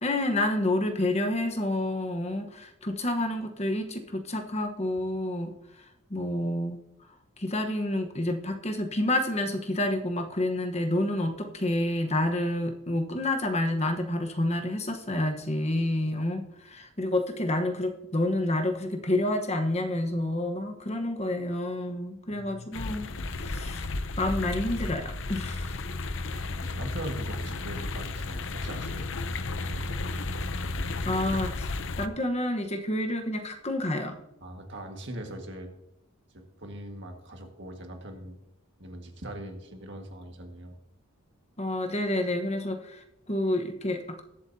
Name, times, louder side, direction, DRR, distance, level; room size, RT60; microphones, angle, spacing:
voice 1, 0.0-5.5 6.1-6.8 7.4-23.1 23.4-23.9 24.2-25.8 31.0-31.7 32.0-34.2 41.6-44.2, left 1 dB, 30° left, 5 dB, 1.1 m, -29 dB
voice 2, 22.3-22.7 26.3-29.1 29.6-30.2 34.4-35.7 36.3-38.3 38.8-40.8, right 1 dB, 55° right, 3 dB, 1.8 m, -41 dB
sound 1, 22.7-32.1, left 3 dB, 60° left, 0.6 m, -33 dB
21.0 x 7.9 x 2.8 m, 0.85 s
head